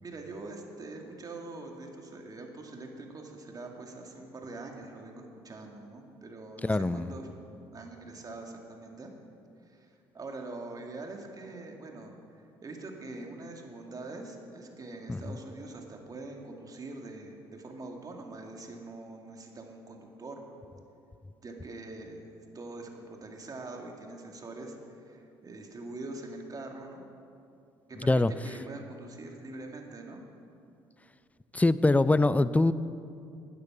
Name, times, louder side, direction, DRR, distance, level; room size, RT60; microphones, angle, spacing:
voice 1, 0.0-7.3 7.7-9.1 9.7-20.5 21.4-22.3 22.5-27.0 27.9-30.2, right 2 dB, 35° right, 2 dB, 2.1 m, -44 dB
voice 2, 6.6-7.1 15.1-15.4 28.0-28.3 31.5-32.7, left 2 dB, 15° left, 15 dB, 0.4 m, -24 dB
12.5 x 9.4 x 6.1 m, 2.5 s
supercardioid pair, 65°, 10 cm